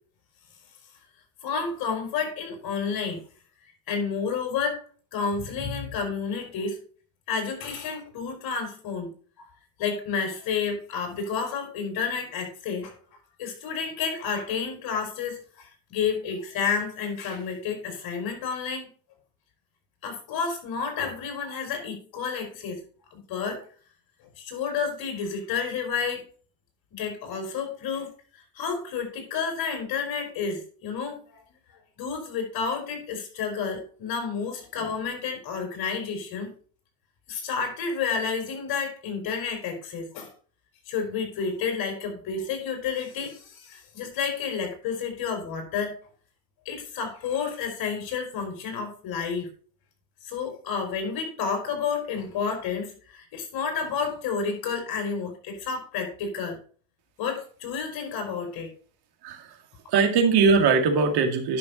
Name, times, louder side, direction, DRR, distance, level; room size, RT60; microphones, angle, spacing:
voice 1, 1.4-3.2 3.9-4.8 5.1-6.8 7.3-9.1 9.4-9.5 9.8-12.9 13.4-18.9 20.0-22.8 23.1-23.7 24.4-26.2 26.9-31.4 31.7-36.5 37.3-40.3 40.9-46.0 46.7-49.5 50.2-56.6 57.2-58.7, left 6 dB, 45° left, 4 dB, 4.2 m, -30 dB
voice 2, 59.2-59.6 59.9-61.6, right 5 dB, 50° right, 4 dB, 2.3 m, -21 dB
11.0 x 6.2 x 4.0 m, 0.41 s
supercardioid pair, 130°, 49 cm